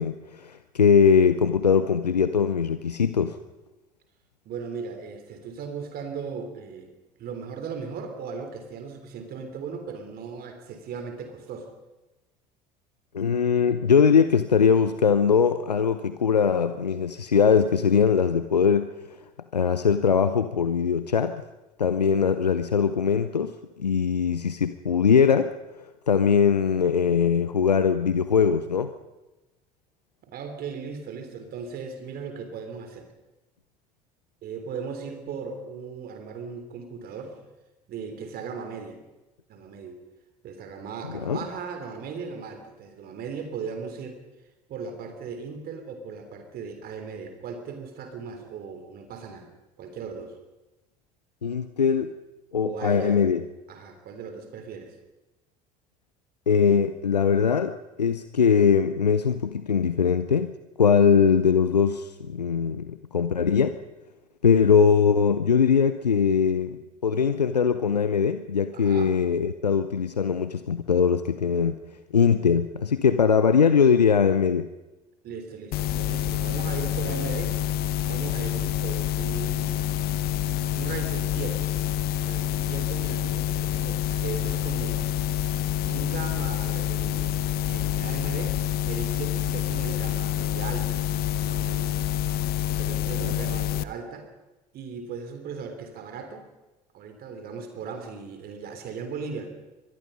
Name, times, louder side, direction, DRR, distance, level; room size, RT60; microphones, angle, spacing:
voice 1, 0.0-3.4 13.1-18.9 19.5-21.4 21.8-23.5 23.8-25.5 26.1-28.9 41.2-41.4 51.4-52.1 52.5-53.4 56.5-63.8 64.4-71.7 72.1-74.7 93.2-93.4, left 6 dB, 85° left, 11 dB, 0.7 m, -21 dB
voice 2, 4.5-6.9 7.2-11.7 30.3-33.1 34.4-37.4 37.9-39.0 39.5-40.0 40.4-44.2 44.7-49.5 49.8-50.3 52.6-53.2 53.7-55.0 68.7-69.1 75.2-77.5 78.1-79.9 80.7-81.7 82.2-85.1 85.8-87.3 87.6-88.6 88.9-91.0 91.4-91.9 92.8-94.3 94.7-96.5 96.9-99.5, right 5 dB, 50° right, 6 dB, 3.5 m, -37 dB
sound 1, 75.7-93.8, left 11 dB, 50° left, 0.9 m, -27 dB
24.5 x 19.5 x 5.5 m, 1.1 s
figure-of-eight pair, 60°, 20 cm